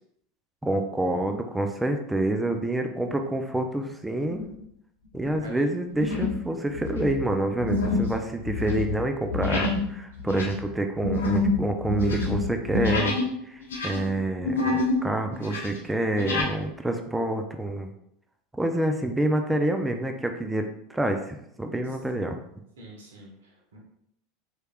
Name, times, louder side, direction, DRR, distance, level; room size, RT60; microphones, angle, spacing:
voice 1, 0.6-4.4 5.1-13.2 13.5-17.9 18.5-22.4, right 1 dB, 10° right, 5 dB, 0.5 m, -27 dB
sound 1, 4.3-4.6 5.2-5.4 6.0-6.5 6.7-13.3 13.6-15.0 15.3-16.5, left 3 dB, 85° left, 0.8 m, -27 dB
voice 2, 7.9-8.3 22.8-23.8, equal, 80° right, 0 dB, 1.1 m, -47 dB
4.4 x 3.2 x 2.3 m, 0.74 s
hypercardioid pair, 90°, 0 cm